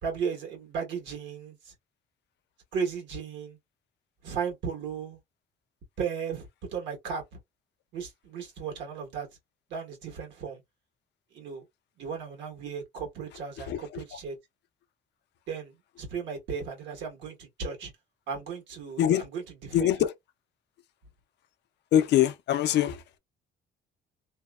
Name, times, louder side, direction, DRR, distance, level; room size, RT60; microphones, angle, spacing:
voice 1, 0.0-1.7 2.7-3.6 4.2-5.2 6.0-7.4 7.9-9.3 9.7-10.6 11.3-11.6 12.0-14.4 15.5-17.9 18.3-19.9, right 6 dB, 75° right, 1.4 m, -35 dB
voice 2, 13.7-14.0 19.0-19.3 19.7-20.1 21.9-23.2, left 11 dB, 70° left, 0.5 m, -24 dB
2.7 x 2.1 x 2.3 m
cardioid pair, 130°, 19 cm